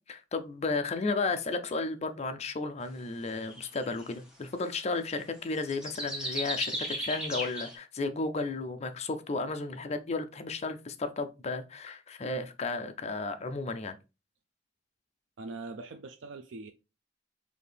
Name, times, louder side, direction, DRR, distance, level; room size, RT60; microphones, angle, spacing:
voice 1, 0.1-14.0, left 3 dB, 35° left, 0.5 m, -33 dB
sound 1, 3.4-4.0 5.6-7.8, equal, 5° right, 1.1 m, -35 dB
voice 2, 15.4-16.7, right 3 dB, 80° right, 0.4 m, -42 dB
4.1 x 2.6 x 3.3 m
head